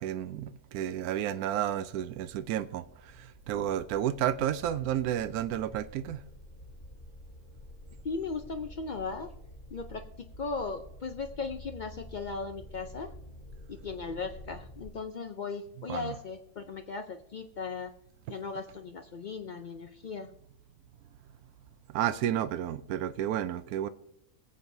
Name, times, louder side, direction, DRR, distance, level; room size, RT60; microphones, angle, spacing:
voice 1, 0.0-6.2 15.9-16.2 21.9-23.9, right 11 dB, 80° right, 1.1 m, -31 dB
sound 1, 1.5-14.9, left 1 dB, 55° left, 4.9 m, -49 dB
voice 2, 8.0-9.3 9.7-13.1 13.7-17.9 18.3-20.3, left 4 dB, 70° left, 0.4 m, -37 dB
21.5 x 7.6 x 2.7 m
omnidirectional pair, 1.5 m